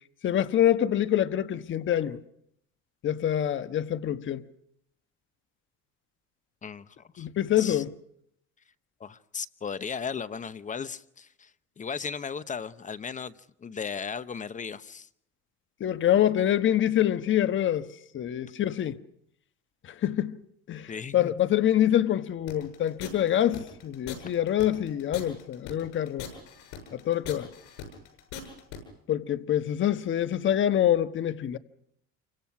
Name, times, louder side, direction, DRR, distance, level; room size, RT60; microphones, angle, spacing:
voice 1, 0.2-2.2 3.0-4.4 7.2-7.9 15.8-17.9 18.1-19.0 20.0-20.3 20.7-26.3 26.9-27.5 29.1-31.6, left 11 dB, 40° left, 1.3 m, -25 dB
voice 2, 6.6-7.3 7.6-7.8 9.0-13.3 13.6-15.1 20.9-21.3, left 6 dB, 25° left, 0.9 m, -36 dB
sound 1, 22.5-28.8, left 9 dB, 90° left, 7.6 m, -41 dB
28.5 x 25.0 x 6.0 m
cardioid pair, 130°, 30 cm